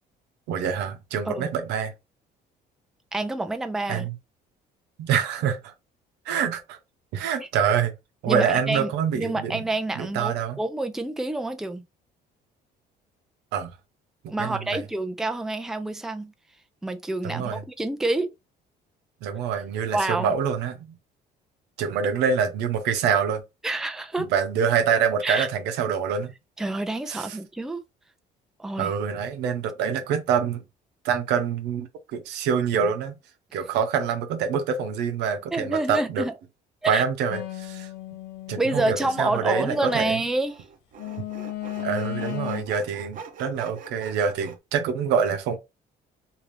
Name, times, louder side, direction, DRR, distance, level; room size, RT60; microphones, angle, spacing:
voice 1, 0.5-1.9 3.9-4.1 5.0-5.7 6.3-6.8 7.1-7.9 8.2-9.6 9.9-10.6 13.5-13.7 14.2-14.8 17.2-17.6 19.2-20.9 21.8-23.4 24.2-26.3 27.1-27.4 28.8-30.6 31.0-33.2 33.5-36.2 36.8-37.9 38.5-40.1 41.8-45.6, right 7 dB, 90° right, 0.8 m, -26 dB
voice 2, 3.1-4.1 7.4-7.5 8.3-8.9 9.1-11.8 14.3-16.3 16.8-18.3 19.9-20.3 23.6-24.3 25.2-25.5 26.6-27.8 28.6-28.9 35.5-36.3 36.8-37.0 38.6-40.5, right 2 dB, 5° right, 0.4 m, -28 dB
sound 1, 37.3-40.3 41.0-42.6, left 14 dB, 80° left, 0.6 m, -35 dB
Sawing, 39.3-39.4 40.4-44.6, right 5 dB, 55° right, 0.7 m, -43 dB
2.7 x 2.7 x 3.3 m
cardioid pair, 110°, 17 cm